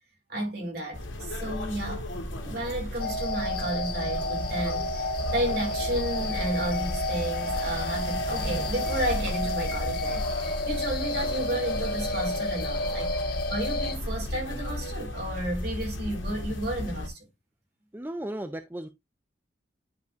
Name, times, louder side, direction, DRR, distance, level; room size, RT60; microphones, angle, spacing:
voice 1, 0.3-17.2, right 1 dB, 55° right, 4.5 m, -32 dB
sound 1, 0.9-17.1, left 1 dB, 90° left, 2.1 m, -34 dB
sound 2, 3.0-14.0, left 1 dB, 55° left, 1.3 m, -31 dB
sound 3, 6.5-14.4, right 2 dB, 90° right, 2.5 m, -48 dB
voice 2, 17.9-18.9, right 1 dB, 10° right, 0.5 m, -35 dB
10.5 x 5.3 x 2.5 m
head